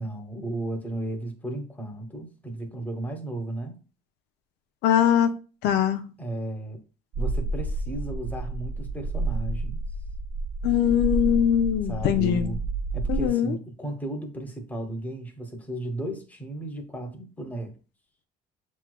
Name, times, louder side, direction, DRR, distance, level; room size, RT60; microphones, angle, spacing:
voice 1, 0.0-3.8 6.2-6.8 7.2-9.8 11.9-12.6 12.9-17.7, right 1 dB, 10° left, 1.0 m, -34 dB
voice 2, 4.8-5.3 5.6-6.1 10.6-12.5 13.1-13.6, left 10 dB, 80° left, 0.6 m, -22 dB
sound 1, 7.1-13.3, right 3 dB, 45° right, 0.4 m, -30 dB
6.8 x 3.1 x 2.2 m
cardioid pair, 110°, 17 cm